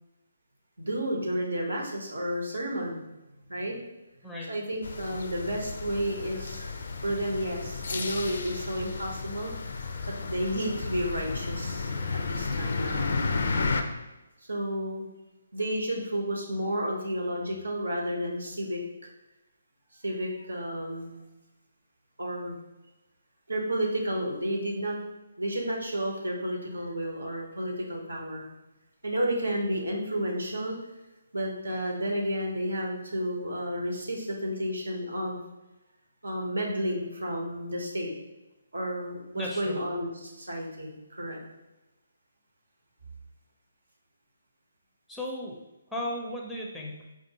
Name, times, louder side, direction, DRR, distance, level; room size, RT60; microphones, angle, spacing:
voice 1, 0.8-3.0 3.5-3.8 4.5-6.8 7.0-9.5 10.2-13.2 14.5-15.1 15.5-19.1 20.0-21.2 22.2-22.5 23.5-25.0 25.4-28.5 29.0-30.7 31.3-35.4 36.2-38.1 38.7-41.4, equal, 80° right, 0 dB, 0.9 m, -31 dB
sound 1, 4.8-13.8, left 4 dB, 65° left, 0.4 m, -32 dB
voice 2, 39.4-39.8 45.1-45.6 45.9-47.0, left 1 dB, ahead, -2 dB, 0.5 m, -35 dB
4.7 x 2.5 x 2.8 m, 1.0 s
figure-of-eight pair, 145°, 0 cm